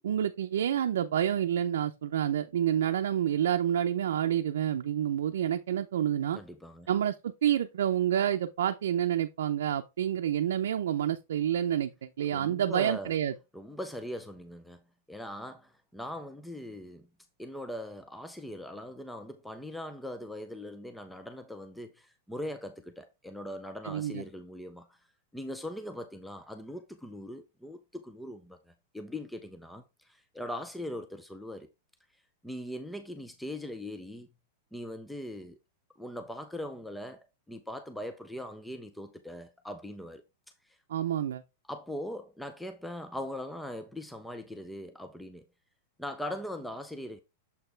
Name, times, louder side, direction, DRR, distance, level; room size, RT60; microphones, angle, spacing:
voice 1, 0.0-6.4 6.9-13.3 23.8-24.2 40.9-41.4, right 10 dB, 85° right, 0.5 m, -28 dB
voice 2, 6.3-6.9 12.3-13.1 13.5-14.8 15.1-17.1 17.4-25.0 25.3-31.7 32.4-34.3 34.7-35.6 36.0-40.2 40.6-40.8 41.7-45.5 46.0-47.2, left 1 dB, ahead, 0.3 m, -40 dB
6.8 x 4.5 x 3.3 m
supercardioid pair, 180°, 0 cm